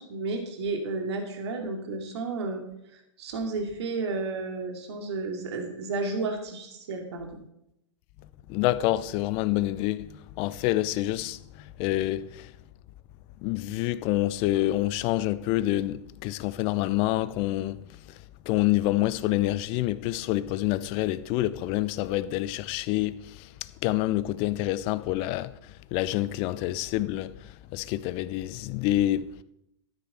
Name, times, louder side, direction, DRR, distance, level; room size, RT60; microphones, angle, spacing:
voice 1, 0.0-2.6 2.9-7.3, right 3 dB, 60° right, 2.6 m, -32 dB
voice 2, 8.5-12.5 13.4-17.8 18.5-23.5 23.8-25.6 25.9-29.3, left 15 dB, 35° left, 0.6 m, -27 dB
13.0 x 9.8 x 4.4 m
hypercardioid pair, 110°, 16 cm